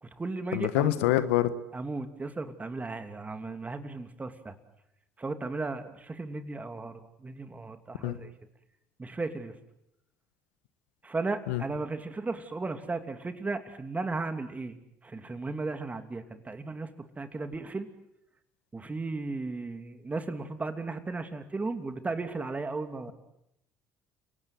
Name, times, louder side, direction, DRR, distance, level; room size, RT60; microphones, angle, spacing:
voice 1, 0.0-1.1 1.7-4.5 5.2-8.3 9.0-9.5 11.0-14.8 15.0-16.9 17.2-17.9 18.7-23.1, right 3 dB, 25° right, 8 dB, 2.8 m, -35 dB
voice 2, 0.5-1.5 8.0-8.2 11.5-11.6, left 14 dB, 85° left, 13 dB, 1.2 m, -26 dB
30.0 x 18.0 x 8.0 m, 0.79 s
hypercardioid pair, 70°, 7 cm